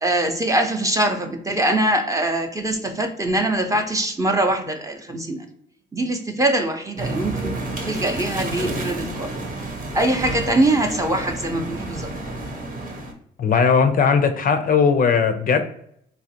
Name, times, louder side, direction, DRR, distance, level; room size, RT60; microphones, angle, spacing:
voice 1, 0.0-5.5 5.9-7.5 7.9-9.3 9.9-12.1, right 1 dB, 15° right, 5 dB, 0.6 m, -22 dB
sound 1, 7.0-13.1, right 2 dB, 45° right, 0.9 m, -30 dB
voice 2, 13.4-15.6, left 6 dB, 45° left, 8 dB, 0.4 m, -18 dB
4.0 x 2.4 x 2.7 m, 0.72 s
cardioid pair, 90°, 20 cm